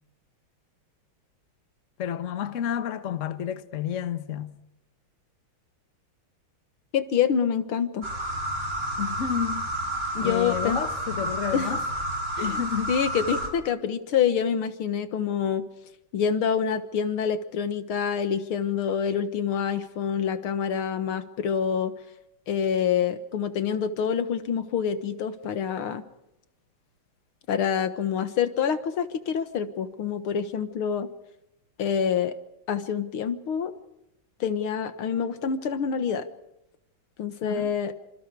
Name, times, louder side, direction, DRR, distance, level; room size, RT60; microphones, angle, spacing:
voice 1, 2.0-4.5 9.0-9.7 10.2-11.8 12.4-12.9 37.4-37.7, left 9 dB, 45° left, 1.3 m, -30 dB
voice 2, 6.9-8.1 10.1-10.8 11.5-11.8 12.4-12.6 12.9-15.7 16.1-21.9 22.5-26.0 27.5-31.1 31.8-32.3 32.7-33.7 34.4-36.3 37.2-37.9, left 7 dB, 85° left, 2.3 m, -26 dB
sound 1, 8.0-13.5, right 1 dB, 40° right, 4.8 m, -30 dB
27.0 x 26.0 x 4.8 m
omnidirectional pair, 2.3 m